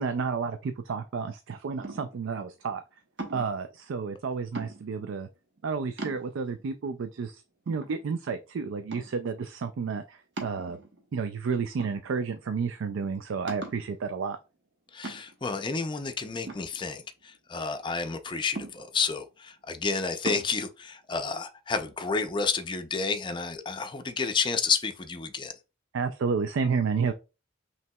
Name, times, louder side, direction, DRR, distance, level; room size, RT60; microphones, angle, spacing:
voice 1, 0.0-2.8 3.3-5.3 5.6-10.8 11.1-14.4 25.9-27.1, right 5 dB, 90° right, 0.4 m, -31 dB
sound 1, 1.8-2.3 3.2-3.6 4.5-5.1 5.6-5.7 6.0-6.6 7.2-7.3 7.7-8.4 8.9-9.3 10.4-11.1 11.8-12.4 12.8-12.9 13.5-13.9 15.0-15.5 16.5-17.4 18.6-19.1 20.3-20.5, right 2 dB, 60° right, 1.0 m, -39 dB
voice 2, 14.9-25.5, left 5 dB, 25° left, 0.4 m, -30 dB
5.6 x 3.0 x 2.2 m
head